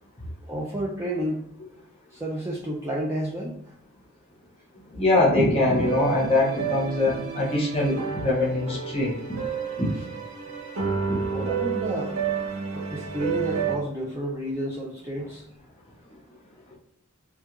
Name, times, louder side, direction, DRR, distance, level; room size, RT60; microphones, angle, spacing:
voice 1, 0.5-1.4 2.1-3.7 11.2-12.2 12.7-15.4, right 1 dB, 10° right, -5 dB, 0.3 m, -31 dB
voice 2, 4.9-9.4 9.8-9.9 11.1-11.2, left 2 dB, 30° left, -3 dB, 0.7 m, -23 dB
sound 1, 5.6-13.8, right 6 dB, 75° right, 0.6 m, -30 dB
2.4 x 2.2 x 2.8 m, 0.74 s
head